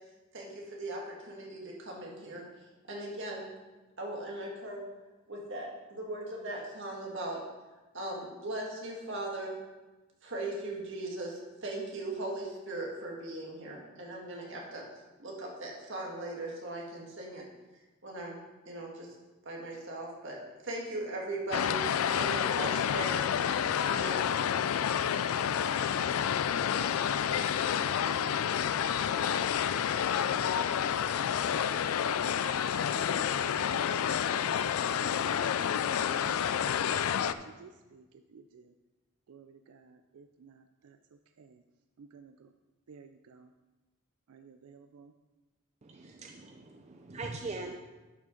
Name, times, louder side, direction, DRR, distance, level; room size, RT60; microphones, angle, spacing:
voice 1, 0.3-2.4 2.9-3.5 4.0-4.8 5.3-7.4 7.9-9.6 10.2-14.8 15.2-17.5 18.0-18.4 18.7-19.1 19.5-20.4 20.6-23.2 23.8-24.3, right 1 dB, 60° right, -2 dB, 1.9 m, -39 dB
sound 1, 21.5-37.3, left 8 dB, 80° left, 0.4 m, -29 dB
voice 2, 26.6-28.6 29.3-31.6 32.2-36.3 36.8-38.7 39.3-41.0 41.4-41.6 42.0-42.5 42.9-43.5 44.3-45.1, right 5 dB, 90° right, 8 dB, 0.4 m, -54 dB
voice 3, 45.8-47.7, right 3 dB, 30° right, 3 dB, 0.5 m, -41 dB
11.0 x 6.1 x 3.8 m, 1.2 s
head